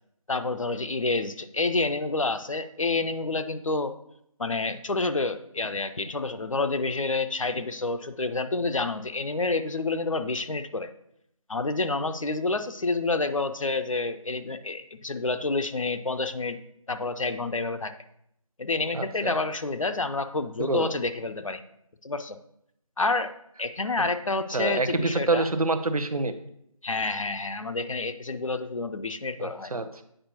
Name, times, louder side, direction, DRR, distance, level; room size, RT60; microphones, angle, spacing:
voice 1, 0.3-3.9 4.4-10.9 11.5-16.6 16.9-17.9 18.6-21.6 22.0-22.4 23.0-23.3 23.6-25.5 26.8-29.7, left 3 dB, 65° left, 9 dB, 0.5 m, -28 dB
voice 2, 18.9-19.4 20.6-20.9 24.5-26.3 29.4-30.0, right 3 dB, 85° right, 10 dB, 0.7 m, -27 dB
8.8 x 5.0 x 2.9 m, 0.73 s
figure-of-eight pair, 175°, 18 cm